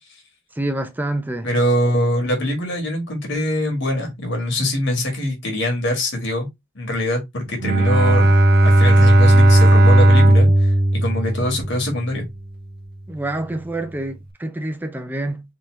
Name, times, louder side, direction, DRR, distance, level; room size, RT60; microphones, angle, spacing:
voice 1, 0.6-1.5 13.1-15.4, right 1 dB, 10° right, 0.4 m, -27 dB
voice 2, 1.4-6.5 6.7-8.3 8.6-12.2, left 1 dB, 60° left, 1.5 m, -23 dB
Bowed string instrument, 7.6-12.0, right 1 dB, 50° right, 0.6 m, -14 dB
3.7 x 2.8 x 3.1 m
head